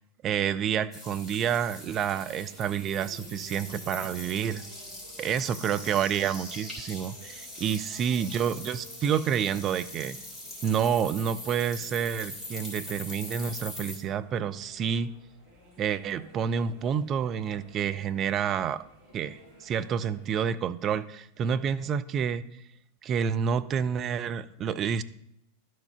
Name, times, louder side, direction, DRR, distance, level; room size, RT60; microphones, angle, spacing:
voice 1, 0.2-4.6 5.2-10.2 10.6-15.1 15.8-18.8 19.1-22.4 23.0-25.0, right 8 dB, 30° right, 12 dB, 0.4 m, -29 dB
sound 1, 0.9-14.0, left 1 dB, 15° left, 2.9 m, -42 dB
sound 2, 2.2-20.4, equal, 45° right, 2.5 m, -55 dB
11.5 x 4.7 x 5.6 m, 0.74 s
figure-of-eight pair, 90°, 0 cm